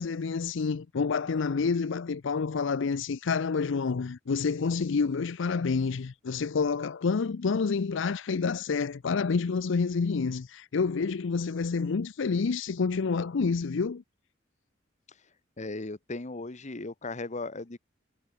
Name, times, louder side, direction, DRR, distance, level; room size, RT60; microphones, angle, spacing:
voice 1, 0.0-14.0, left 5 dB, 70° left, 0.5 m, -28 dB
voice 2, 15.6-17.8, left 3 dB, 35° left, 1.1 m, -37 dB
head